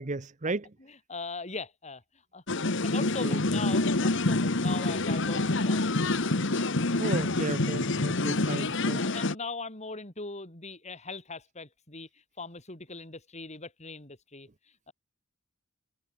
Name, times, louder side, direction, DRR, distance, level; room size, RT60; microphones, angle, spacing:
voice 1, 0.0-0.7 3.2-3.4 7.0-9.1, right 3 dB, 35° right, 0.9 m, -34 dB
voice 2, 0.8-2.0 2.3-5.8 8.6-12.1 12.4-14.5 14.9-15.0, left 3 dB, 35° left, 4.5 m, -40 dB
sound 1, 2.5-9.4, left 2 dB, 60° left, 1.7 m, -27 dB
head